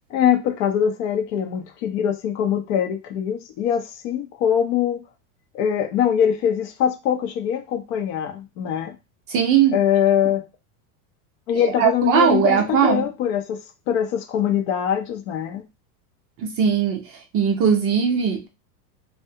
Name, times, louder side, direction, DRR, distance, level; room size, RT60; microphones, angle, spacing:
voice 1, 0.1-5.0 5.5-9.0 9.7-10.4 11.5-13.6 13.9-15.6, left 9 dB, 50° left, 0.6 m, -22 dB
voice 2, 9.3-9.8 11.5-13.1 16.5-18.5, right 8 dB, 30° right, 0.5 m, -19 dB
2.3 x 2.0 x 2.7 m
supercardioid pair, 135°, 46 cm